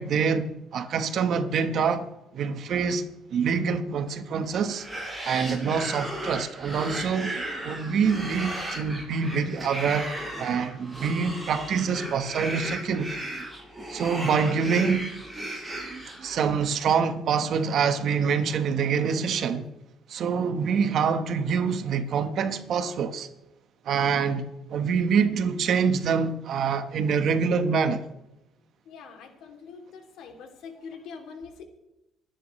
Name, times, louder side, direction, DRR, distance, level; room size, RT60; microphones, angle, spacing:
voice 1, 0.0-2.1 2.3-4.9 5.2-7.3 7.6-10.1 10.4-13.2 13.9-15.1 16.2-19.7 20.1-23.3 23.8-24.4 24.7-28.0, right 6 dB, 60° right, 1.2 m, -25 dB
sound 1, 4.6-16.7, right 1 dB, 10° right, 7.0 m, -36 dB
voice 2, 14.0-14.5 28.8-31.6, left 5 dB, 75° left, 2.9 m, -44 dB
27.5 x 10.0 x 3.2 m
cardioid pair, 125°, 0 cm